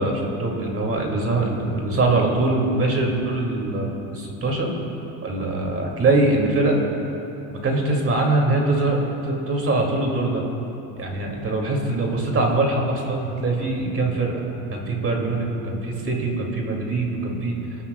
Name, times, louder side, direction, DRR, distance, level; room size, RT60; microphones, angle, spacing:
voice 1, 0.0-4.7 5.2-6.8 7.5-10.4 11.0-14.4 14.7-17.8, right 2 dB, 35° right, 0 dB, 2.6 m, -23 dB
26.0 x 13.0 x 2.4 m, 3.0 s
supercardioid pair, 100°, 41 cm